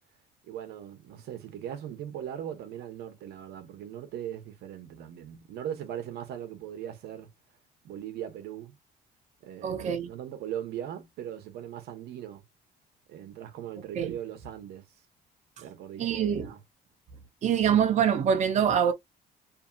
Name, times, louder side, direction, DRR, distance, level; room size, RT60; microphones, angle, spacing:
voice 1, 0.4-7.3 7.8-8.8 9.4-12.4 13.1-14.8 15.6-16.6, right 10 dB, 75° right, 0.9 m, -39 dB
voice 2, 9.6-10.1 13.9-14.1 16.0-16.5 17.4-18.9, right 8 dB, 45° right, 0.6 m, -24 dB
2.7 x 2.6 x 2.3 m
cardioid pair, 110°, 17 cm